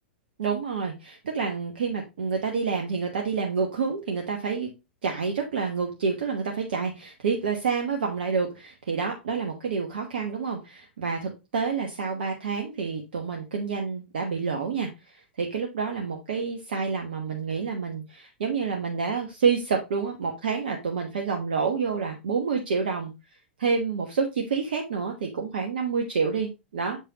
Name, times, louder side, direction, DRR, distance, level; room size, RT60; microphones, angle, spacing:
voice 1, 0.4-4.7 5.0-23.1 23.6-27.0, right 5 dB, 60° right, 2 dB, 1.2 m, -28 dB
7.0 x 5.3 x 2.9 m, 0.24 s
figure-of-eight pair, 100°, 6 cm